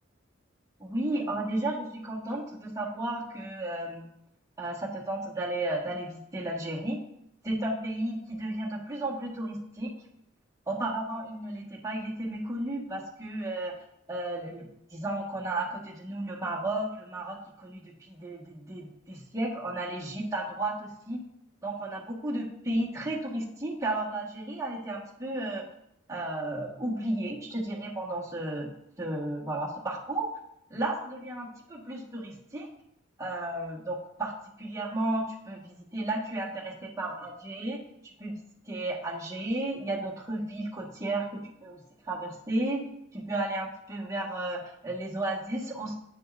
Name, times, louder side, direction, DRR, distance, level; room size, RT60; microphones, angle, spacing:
voice 1, 0.8-4.1 4.6-7.0 7.4-9.9 10.7-13.7 14.1-21.2 21.6-25.6 26.1-28.7 29.0-30.3 30.7-32.7 33.2-34.3 34.6-37.8 38.2-38.4 38.7-41.8 42.0-42.8 43.1-45.9, right 1 dB, 15° right, -4 dB, 1.4 m, -33 dB
8.4 x 6.5 x 2.5 m, 0.79 s
head